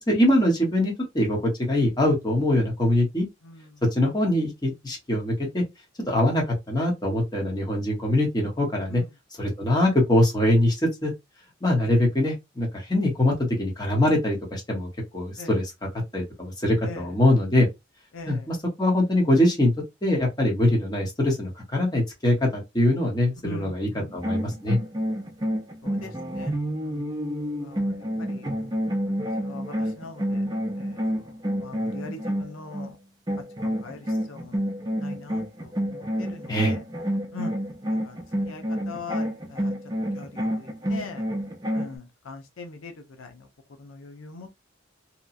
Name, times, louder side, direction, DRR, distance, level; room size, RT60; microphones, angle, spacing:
voice 1, 0.1-3.2 3.9-5.6 6.1-9.0 9.4-11.1 11.6-14.9 15.1-15.7 16.1-17.7 18.3-19.7 20.0-24.8 36.5-36.7, left 1 dB, 20° left, 1.0 m, -23 dB
voice 2, 18.1-18.5 23.4-24.2 25.8-27.1 27.6-27.9 28.2-28.7 29.4-30.4 30.8-31.2 31.6-33.0 33.6-34.6 35.0-36.8 37.3-37.6 38.0-38.2 38.5-39.7 40.1-41.2 41.7-42.9 43.2-43.5 43.8-44.6, left 3 dB, 90° left, 0.6 m, -41 dB
sound 1, 24.1-32.9 33.3-42.0, equal, 20° right, 0.5 m, -29 dB
2.9 x 2.3 x 2.5 m
head